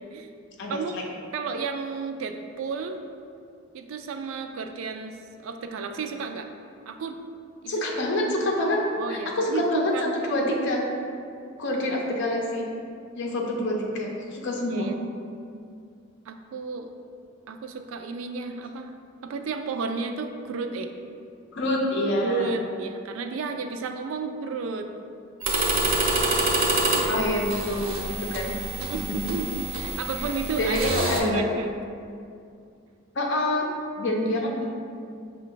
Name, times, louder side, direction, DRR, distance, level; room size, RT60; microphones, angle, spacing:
voice 1, 0.6-1.0 7.7-8.8 9.1-9.9 10.2-10.8 11.6-12.7 13.2-14.9 21.5-22.6 27.1-28.5 28.9-29.0 30.6-31.4 33.1-33.7 34.0-34.7, left 1 dB, 60° left, -1 dB, 0.6 m, -26 dB
voice 2, 1.3-3.0 3.7-5.2 5.4-6.5 6.9-7.2 7.6-7.9 9.0-10.5 14.7-15.0 16.3-16.9 17.5-18.9 19.2-20.9 22.2-24.9 26.9-27.2 28.8-31.7, right 4 dB, 70° right, 6 dB, 0.3 m, -32 dB
sound 1, 25.4-31.2, right 2 dB, 90° right, 0.7 m, -27 dB
5.4 x 2.3 x 3.8 m, 2.4 s
head